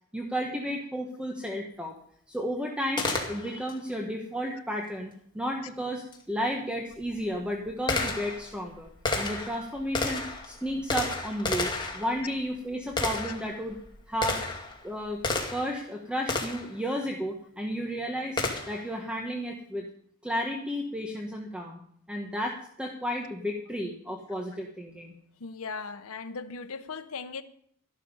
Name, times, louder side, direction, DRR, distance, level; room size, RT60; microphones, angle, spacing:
voice 1, 0.1-2.0 2.3-8.9 9.2-13.8 14.1-14.4 14.8-15.2 15.5-18.4 18.7-19.8 20.2-21.8 22.1-25.1, equal, 5° right, 1.3 m, -33 dB
Gunshot gunfire, 3.0-3.8 6.1-6.2 6.9-15.8 16.3-16.8 18.4-18.9, left 3 dB, 20° left, 2.3 m, -32 dB
voice 2, 25.4-27.4, left 4 dB, 70° left, 0.8 m, -38 dB
12.5 x 11.5 x 5.4 m
head